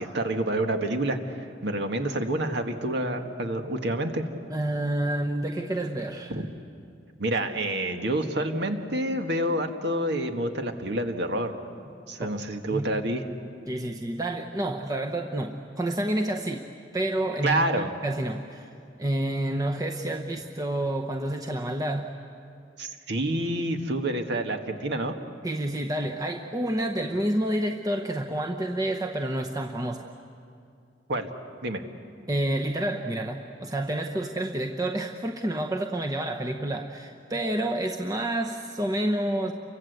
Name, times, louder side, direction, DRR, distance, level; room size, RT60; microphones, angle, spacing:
voice 1, 0.0-4.3 6.3-6.5 7.2-11.6 12.1-13.2 17.4-17.9 22.8-25.2 31.1-31.3 31.6-31.8, right 1 dB, 65° right, 5 dB, 1.8 m, -28 dB
voice 2, 4.5-6.4 12.2-12.3 12.7-12.9 13.7-16.7 16.9-18.7 19.0-22.1 25.4-30.1 32.3-39.5, right 1 dB, 20° right, 3 dB, 0.9 m, -29 dB
29.0 x 24.0 x 8.1 m, 2.4 s
head